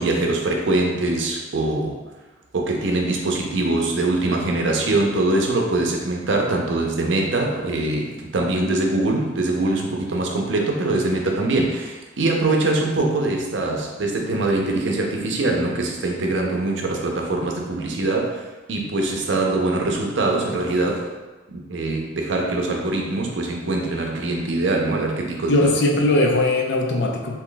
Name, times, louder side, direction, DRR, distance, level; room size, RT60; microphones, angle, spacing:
voice 1, 0.0-2.0 2.5-18.4 18.7-21.0 21.5-25.8, right 2 dB, 85° right, 1 dB, 0.5 m, -23 dB
voice 2, 25.5-27.4, left 2 dB, 70° left, 1 dB, 0.5 m, -19 dB
2.8 x 2.2 x 3.8 m, 1.2 s
head